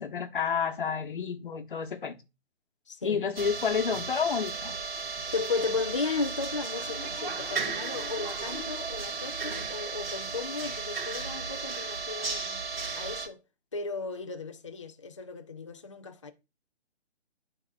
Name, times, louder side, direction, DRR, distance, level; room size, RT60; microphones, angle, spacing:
voice 1, 0.0-2.2 3.0-4.8, left 6 dB, 45° left, 1.1 m, -30 dB
voice 2, 2.9-3.2 5.3-12.6 13.0-13.4 13.7-16.3, left 4 dB, 25° left, 0.4 m, -35 dB
sound 1, 3.4-13.3, right 4 dB, 55° right, 2.1 m, -35 dB
11.5 x 4.1 x 2.3 m
figure-of-eight pair, 145°, 35 cm